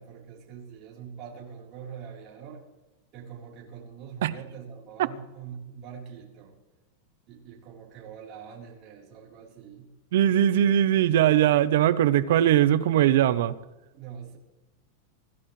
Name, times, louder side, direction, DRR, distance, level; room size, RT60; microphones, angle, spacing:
voice 1, 0.0-2.6 3.1-6.5 7.3-9.9 13.9-14.4, right 7 dB, 30° right, 4.1 m, -44 dB
voice 2, 10.1-13.5, right 11 dB, 65° right, 0.9 m, -20 dB
25.5 x 14.0 x 3.3 m
supercardioid pair, 175°, 0 cm